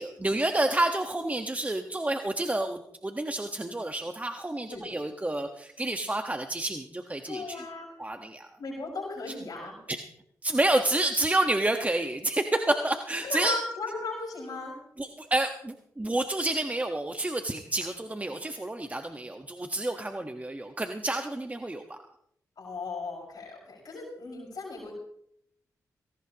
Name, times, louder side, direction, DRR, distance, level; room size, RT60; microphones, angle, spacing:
voice 1, 0.0-7.6 8.0-8.5 9.9-10.0 10.4-13.5 15.0-22.0, right 2 dB, 20° right, 6 dB, 1.3 m, -29 dB
voice 2, 7.3-7.9 8.6-9.7 13.2-14.7 22.6-24.9, left 3 dB, 65° left, -5 dB, 5.4 m, -36 dB
18.5 x 17.5 x 3.0 m, 0.70 s
supercardioid pair, 45°, 7 cm